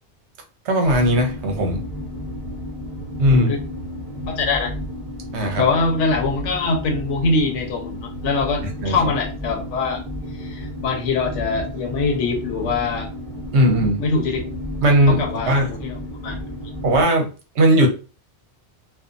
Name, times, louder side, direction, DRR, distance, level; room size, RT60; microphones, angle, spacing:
voice 1, 0.7-1.8 3.2-3.5 5.3-5.6 8.8-8.9 13.5-14.0 14.8-15.7 16.8-17.3 17.6-17.9, right 1 dB, 75° right, 3 dB, 1.0 m, -17 dB
sound 1, 0.8-17.0, left 1 dB, 5° left, 0.8 m, -32 dB
voice 2, 3.3-3.6 4.3-4.7 5.6-10.0 10.3-13.1 14.0-14.5 15.0-16.4, left 3 dB, 90° left, 3 dB, 0.9 m, -23 dB
2.6 x 2.3 x 2.5 m, 0.34 s
omnidirectional pair, 1.2 m